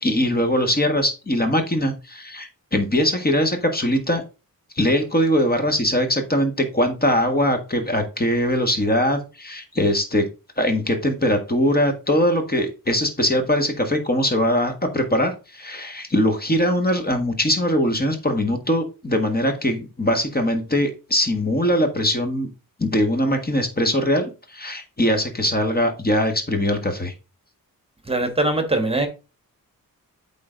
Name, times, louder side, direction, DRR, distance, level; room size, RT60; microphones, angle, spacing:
voice 1, 0.0-4.2 4.7-10.3 10.6-22.5 22.8-27.1, equal, 25° left, 1.6 m, -21 dB
voice 2, 28.1-29.1, right 2 dB, 15° right, 1.4 m, -21 dB
8.4 x 3.9 x 3.9 m
wide cardioid pair, 90°, 36 cm